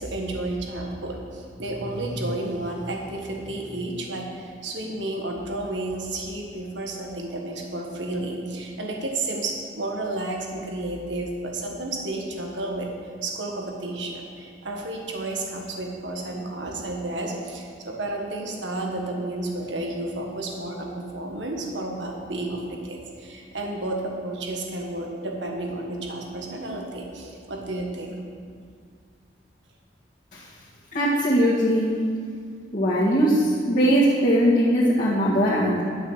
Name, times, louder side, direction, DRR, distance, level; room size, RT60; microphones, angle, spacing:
voice 1, 0.0-12.9 13.2-28.2, right 2 dB, 85° right, 1 dB, 1.6 m, -31 dB
voice 2, 30.9-32.0 32.7-35.8, equal, 45° left, -9 dB, 1.8 m, -20 dB
11.5 x 6.5 x 6.5 m, 2.2 s
head